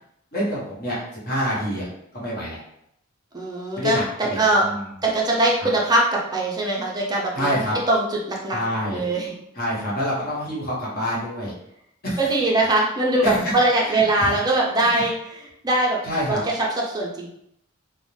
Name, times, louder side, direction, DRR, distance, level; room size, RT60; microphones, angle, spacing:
voice 1, 0.3-1.9 2.1-2.6 3.7-5.0 5.6-5.7 7.3-7.8 8.5-9.1 9.5-11.5 12.0-12.3 13.2-13.4 13.8-14.4 14.8-15.0 16.0-16.4, equal, 45° left, -6 dB, 1.0 m, -27 dB
voice 2, 3.3-4.7 5.0-7.6 7.9-8.6 8.9-9.3 12.2-16.0 16.3-17.3, right 2 dB, 20° right, -3 dB, 0.5 m, -22 dB
2.5 x 2.0 x 3.1 m, 0.77 s
head